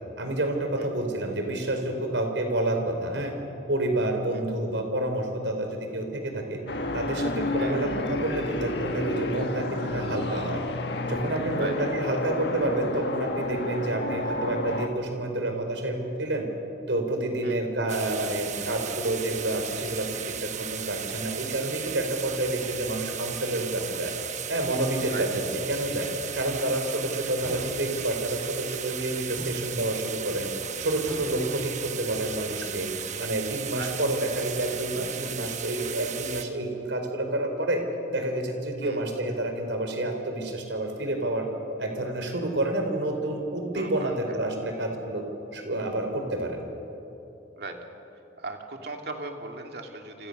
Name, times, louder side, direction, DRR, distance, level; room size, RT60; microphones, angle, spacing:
voice 1, 0.2-3.3 3.7-6.6 6.9-10.6 11.1-16.5 16.9-24.1 24.5-26.1 26.3-30.5 30.8-32.9 33.2-37.8 38.1-41.5 41.8-45.2 45.5-46.6, right 1 dB, 80° right, 4 dB, 4.3 m, -29 dB
sound 1, 6.7-14.9, left 2 dB, 60° left, 1.7 m, -30 dB
sound 2, 17.9-36.4, right 9 dB, 40° right, 1.1 m, -36 dB
sound 3, 27.3-28.1 29.4-29.7 30.1-30.3 30.7-31.5 32.8-33.4 34.4-34.5, equal, 10° right, 6.9 m, -44 dB
voice 2, 43.7-44.4 47.6-47.8 48.4-50.3, right 3 dB, 60° right, 3 dB, 2.7 m, -38 dB
29.0 x 26.0 x 6.7 m, 3.0 s
head